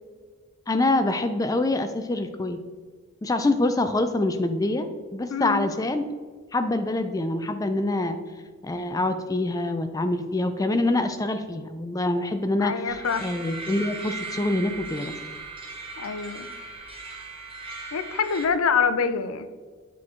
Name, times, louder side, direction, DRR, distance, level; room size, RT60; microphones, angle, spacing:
voice 1, 0.7-2.6 3.2-6.0 6.5-8.2 8.6-15.2, left 2 dB, 15° left, 8 dB, 0.3 m, -25 dB
voice 2, 5.3-5.7 12.6-13.3 16.0-16.5 17.9-19.5, left 6 dB, 75° left, 11 dB, 0.5 m, -25 dB
sound 1, 12.9-18.5, right 3 dB, 25° right, 1.0 m, -38 dB
8.3 x 4.5 x 3.7 m, 1.5 s
head